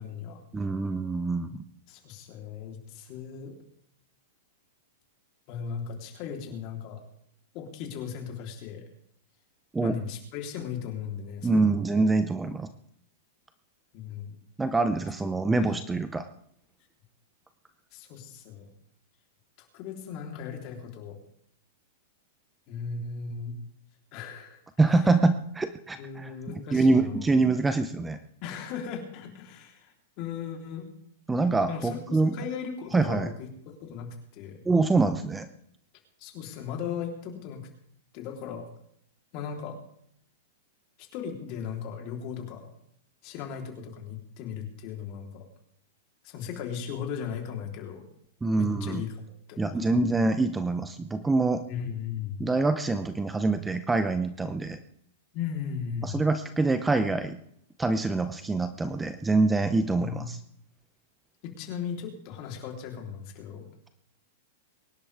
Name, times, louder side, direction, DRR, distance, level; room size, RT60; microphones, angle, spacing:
voice 1, 0.0-0.4 1.9-3.6 5.5-7.0 7.5-8.8 9.8-11.9 13.9-14.4 15.4-15.6 17.9-18.7 19.7-21.2 22.7-23.5 24.1-24.6 26.0-27.3 28.4-30.9 31.7-34.6 36.2-37.6 38.1-38.7 39.3-39.8 41.0-42.7 43.2-45.5 46.2-48.1 48.6-49.9 51.7-52.5 55.3-56.2 59.9-60.2 61.4-63.7, left 7 dB, 40° left, 2 dB, 3.5 m, -37 dB
voice 2, 0.5-1.6 9.7-10.0 11.4-12.7 14.6-16.2 24.8-28.2 31.3-32.4 32.9-33.3 34.6-35.5 48.4-49.0 49.6-51.6 52.4-54.8 56.0-57.4 57.8-60.4, right 3 dB, 10° right, 10 dB, 0.6 m, -25 dB
23.5 x 11.5 x 3.5 m, 0.70 s
supercardioid pair, 155°, 0 cm